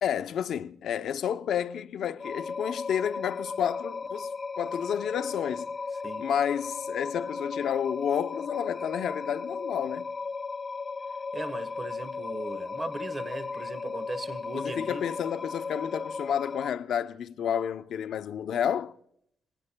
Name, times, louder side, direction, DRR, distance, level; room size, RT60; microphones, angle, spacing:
voice 1, 0.0-4.3 4.6-5.7 6.2-10.1 14.5-18.9, left 9 dB, 70° left, 0.6 m, -30 dB
sound 1, 2.2-16.7, left 4 dB, 30° left, 0.7 m, -36 dB
voice 2, 11.3-15.0, right 2 dB, 25° right, 1.2 m, -38 dB
26.5 x 18.5 x 2.2 m
cardioid pair, 90°, 0 cm